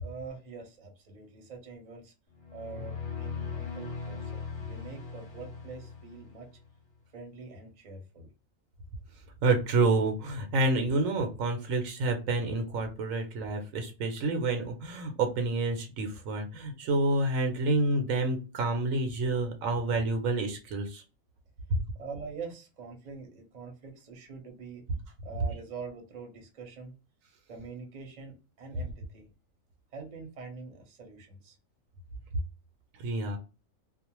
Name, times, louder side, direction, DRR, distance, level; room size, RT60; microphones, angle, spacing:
voice 1, 0.0-2.1 2.5-6.5 7.1-8.3 22.0-24.8 25.2-26.9 27.5-29.3 29.9-31.6, right 4 dB, 40° right, 2 dB, 0.7 m, -44 dB
sound 1, 2.3-6.7, left 5 dB, 5° left, 1.0 m, -39 dB
voice 2, 9.4-21.0 21.7-21.8 33.0-33.4, right 2 dB, 75° right, 5 dB, 1.0 m, -28 dB
2.5 x 2.1 x 2.9 m, 0.31 s
omnidirectional pair, 1.4 m